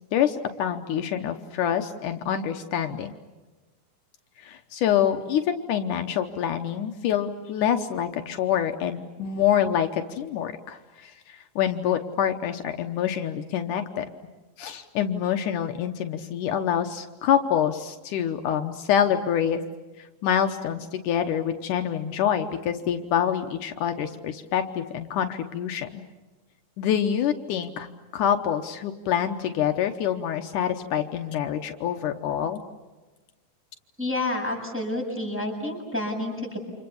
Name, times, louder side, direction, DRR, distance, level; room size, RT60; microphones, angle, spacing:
voice 1, 0.1-3.1 4.4-14.1 14.6-19.6 20.0-26.0 26.8-27.9 28.1-32.6, left 9 dB, 75° left, 6 dB, 2.5 m, -26 dB
voice 2, 34.0-36.6, left 1 dB, 5° right, -2 dB, 7.6 m, -29 dB
29.5 x 27.0 x 7.1 m, 1.2 s
omnidirectional pair, 3.7 m